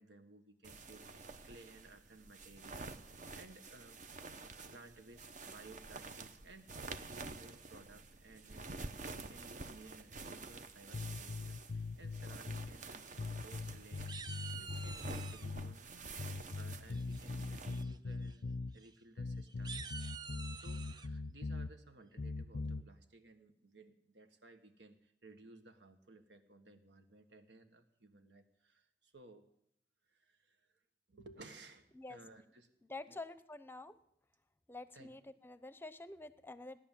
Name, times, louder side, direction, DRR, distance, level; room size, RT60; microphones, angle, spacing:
voice 1, 0.0-4.0 4.3-18.4 18.7-19.8 20.5-29.4 30.1-30.7 31.1-32.7 33.1-33.2 34.9-35.1, right 2 dB, 90° right, 8 dB, 1.6 m, -58 dB
sound 1, 0.6-17.8, right 3 dB, 45° right, 0.9 m, -49 dB
sound 2, 10.9-12.7 13.2-15.8 16.2-18.7 19.2-21.7 22.2-22.8, left 3 dB, 55° left, 0.5 m, -41 dB
sound 3, 13.1-13.7 14.1-15.5 16.9-17.3 17.7-18.0 18.2-18.4 18.7-18.9 19.5-21.1, right 5 dB, 25° right, 0.5 m, -48 dB
voice 2, 32.9-33.9 34.7-36.8, left 2 dB, 15° left, 14 dB, 0.7 m, -48 dB
17.0 x 10.5 x 7.5 m, 0.73 s
head